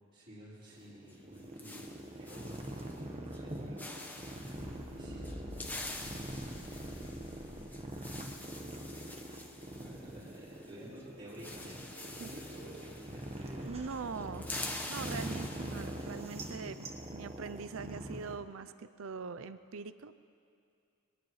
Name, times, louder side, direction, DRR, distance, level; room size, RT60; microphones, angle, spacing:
voice 1, 0.1-5.8 9.7-14.1, equal, 45° right, -13 dB, 4.5 m, -52 dB
sound 1, 0.7-18.4, right 1 dB, 30° right, 1.2 m, -44 dB
sound 2, 1.1-3.0 3.3-3.5 3.8-4.7 5.2-10.7 11.0-11.1 11.3-13.7 13.9-16.4, left 2 dB, 10° left, 1.1 m, -46 dB
sound 3, 4.6-8.7, left 1 dB, 65° left, 2.6 m, -50 dB
voice 2, 12.0-12.3 13.6-14.5 14.9-20.2, right 5 dB, 70° right, 13 dB, 0.5 m, -43 dB
23.5 x 19.0 x 3.2 m, 2.4 s
head